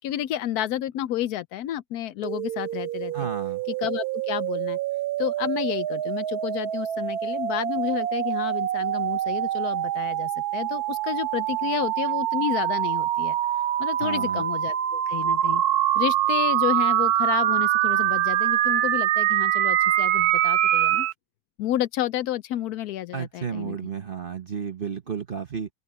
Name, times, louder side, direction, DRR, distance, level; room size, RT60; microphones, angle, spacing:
voice 1, 0.0-3.3 3.7-4.8 5.2-13.4 13.8-15.6 15.9-21.1 21.6-23.8, left 12 dB, 70° left, 1.0 m, -30 dB
sound 1, 2.2-21.1, right 12 dB, 70° right, 1.1 m, -25 dB
voice 2, 3.1-3.6 14.0-14.4 23.1-25.7, right 7 dB, 40° right, 0.9 m, -32 dB
open air
omnidirectional pair, 1.8 m